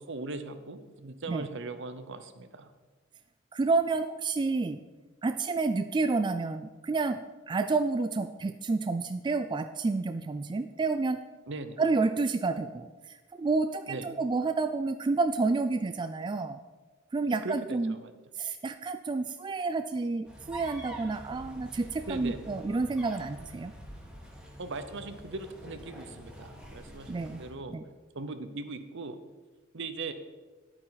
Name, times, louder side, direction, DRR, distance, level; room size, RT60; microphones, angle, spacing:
voice 1, 0.0-2.7 11.5-11.8 13.9-14.1 17.2-18.1 22.1-22.4 24.6-27.8 28.1-29.2 29.7-30.1, right 3 dB, 65° right, 10 dB, 0.8 m, -39 dB
voice 2, 3.5-4.8 5.2-7.2 7.5-11.2 11.8-16.6 17.1-18.0 18.4-23.7 27.1-27.4 27.7-27.8, right 3 dB, 25° right, 9 dB, 0.3 m, -29 dB
sound 1, 20.3-27.5, equal, 5° right, 1.8 m, -46 dB
11.0 x 8.8 x 4.1 m, 1.3 s
head